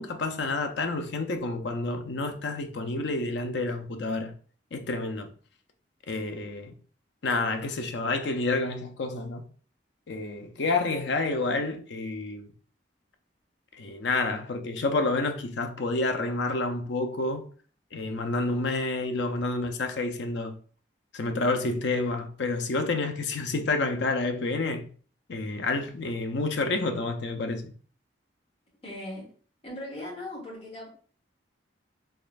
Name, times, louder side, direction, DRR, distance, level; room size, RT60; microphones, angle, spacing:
voice 1, 0.0-4.3 4.7-5.3 6.1-6.7 7.2-9.4 10.1-12.5 13.7-17.4 17.9-20.6 21.1-24.9 25.3-27.7, left 3 dB, 70° left, 0.5 m, -29 dB
voice 2, 28.8-29.3 29.6-30.9, left 1 dB, 30° left, 1.3 m, -38 dB
3.6 x 3.1 x 2.4 m
head